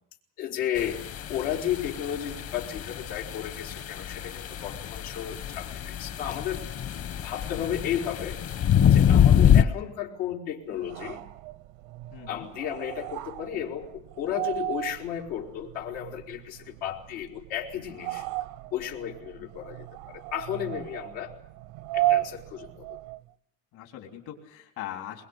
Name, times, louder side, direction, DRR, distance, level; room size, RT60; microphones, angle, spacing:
voice 1, 0.4-6.7 7.2-8.4 8.9-11.2 12.3-18.3 18.7-21.4 21.9-22.9, left 10 dB, 85° left, -1 dB, 4.3 m, -33 dB
sound 1, 0.8-9.6, left 9 dB, 45° left, 1.5 m, -25 dB
sound 2, 10.7-23.3, right 15 dB, 85° right, 1.1 m, -35 dB
voice 2, 12.1-12.5 19.4-19.5 23.7-25.3, left 11 dB, 65° left, 2 dB, 4.0 m, -41 dB
22.5 x 22.0 x 8.2 m, 0.68 s
cardioid pair, 135°, 34 cm